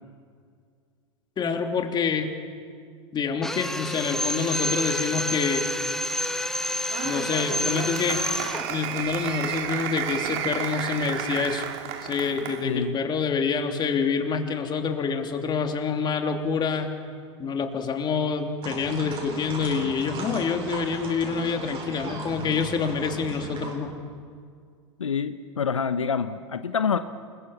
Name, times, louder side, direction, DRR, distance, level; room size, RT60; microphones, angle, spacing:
voice 1, 1.4-2.3 3.1-5.7 7.0-8.3 8.7-11.6 12.0-16.9 17.4-23.9, left 5 dB, 30° left, 4 dB, 3.1 m, -27 dB
Drill, 3.4-8.7, left 1 dB, 5° left, 1.8 m, -28 dB
Applause, 6.9-12.7, right 9 dB, 55° right, 2.3 m, -32 dB
voice 2, 12.6-13.0 25.0-27.0, left 6 dB, 90° left, 11 dB, 1.0 m, -26 dB
sound 1, 18.6-23.7, right 2 dB, 35° right, 7.9 m, -37 dB
29.0 x 22.0 x 7.2 m, 2.1 s
hypercardioid pair, 95°, 16 cm